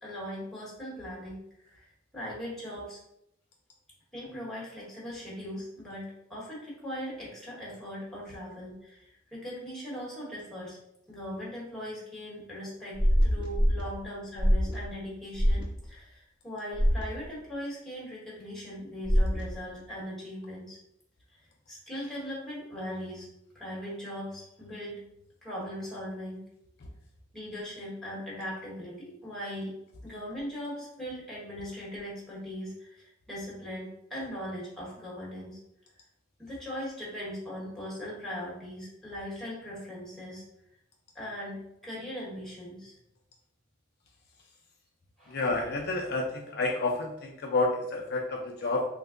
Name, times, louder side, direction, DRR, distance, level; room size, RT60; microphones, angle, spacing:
voice 1, 0.0-1.8 2.1-3.0 4.1-10.8 11.1-20.8 21.3-21.4 21.7-23.3 23.5-25.0 25.4-26.4 27.3-29.7 30.0-35.6 36.4-40.4 41.1-42.9 45.2-45.4, equal, ahead, -6 dB, 1.1 m, -39 dB
sound 1, 12.9-13.8 14.4-14.8 15.3-15.6 16.7-17.0 19.1-19.4, equal, 25° right, 0.6 m, -23 dB
voice 2, 45.3-48.9, left 2 dB, 55° left, 0 dB, 0.4 m, -29 dB
3.2 x 2.1 x 3.6 m, 0.79 s
head